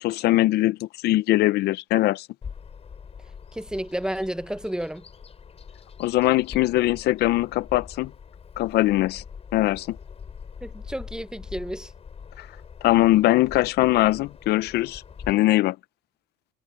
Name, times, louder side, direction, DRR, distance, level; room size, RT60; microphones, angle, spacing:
voice 1, 0.0-2.3 6.0-8.1 8.6-9.2 9.5-10.0 12.4-12.5 12.8-15.8, left 17 dB, 75° left, 0.5 m, -21 dB
Bird vocalization bird call bird song, 2.4-15.3, left 6 dB, 35° left, 5.5 m, -43 dB
voice 2, 3.5-5.0 10.6-11.9, right 1 dB, 5° right, 0.7 m, -31 dB
cardioid pair, 110°, 17 cm